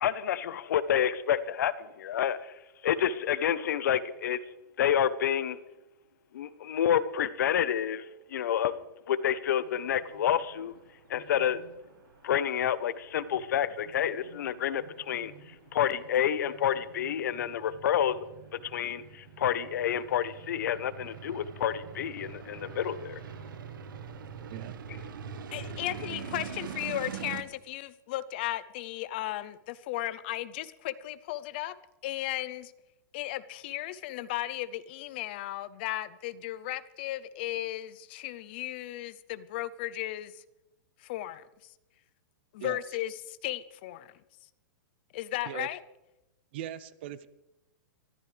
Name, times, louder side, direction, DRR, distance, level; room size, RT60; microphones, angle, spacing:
voice 1, 0.0-2.5 2.8-4.4 4.8-5.6 6.3-8.0 8.3-8.7 9.1-10.7 11.1-11.6 12.2-15.3 15.7-18.2 18.5-23.2, left 9 dB, 55° left, 15 dB, 0.9 m, -29 dB
sound 1, 9.6-27.4, right 7 dB, 75° right, 1.4 m, -44 dB
voice 2, 25.5-31.7 32.0-32.7 33.1-40.4 41.0-41.4 42.5-44.1 45.1-45.8, left 15 dB, 30° left, 16 dB, 0.5 m, -35 dB
voice 3, 46.5-47.3, right 12 dB, 30° right, 17 dB, 0.5 m, -39 dB
23.0 x 14.0 x 3.3 m, 0.96 s
supercardioid pair, 180°, 11 cm